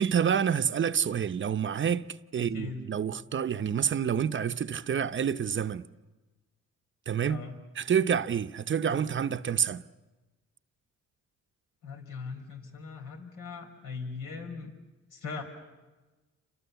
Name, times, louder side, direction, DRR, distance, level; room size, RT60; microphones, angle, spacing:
voice 1, 0.0-2.0 2.3-5.8 7.1-7.4 7.8-9.8, right 8 dB, 40° right, 0.8 m, -28 dB
voice 2, 2.4-2.9 7.3-7.6 11.8-14.7 15.1-15.4, left 4 dB, 85° left, 5.0 m, -40 dB
28.5 x 25.5 x 7.0 m
cardioid pair, 90°, 30 cm